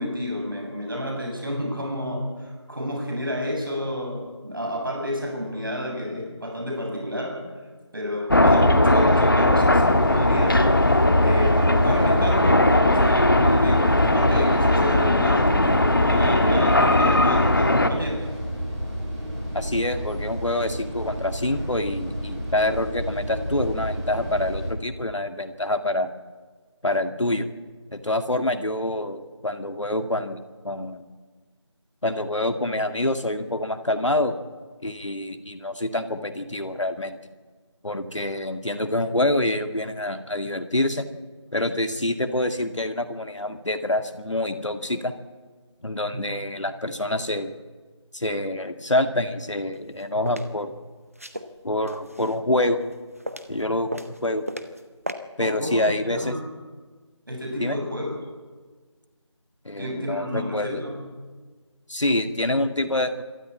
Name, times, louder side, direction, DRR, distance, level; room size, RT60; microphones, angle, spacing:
voice 1, 0.0-7.4 7.9-10.6 11.2-18.3 46.1-46.3 55.4-56.4 57.3-58.1 59.8-61.0, left 1 dB, 45° right, 0 dB, 7.8 m, -30 dB
sound 1, 8.3-17.9, left 1 dB, 45° left, 1.6 m, -18 dB
sound 2, 9.9-24.7, equal, 10° right, 6.0 m, -31 dB
voice 2, 19.5-26.1 26.8-27.5 27.9-31.0 32.0-34.3 34.8-37.2 37.8-41.1 41.5-45.2 45.8-47.5 48.1-50.7 51.6-52.8 53.5-54.4 55.4-56.4 57.6-57.8 59.7-60.8 61.9-63.2, left 1 dB, 75° left, 7 dB, 2.0 m, -26 dB
sound 3, 49.7-50.5 51.1-52.4 52.8-53.6 53.9-54.8 55.1-55.2, right 1 dB, 30° right, 1.0 m, -35 dB
26.0 x 13.0 x 8.9 m, 1.4 s
figure-of-eight pair, 175°, 16 cm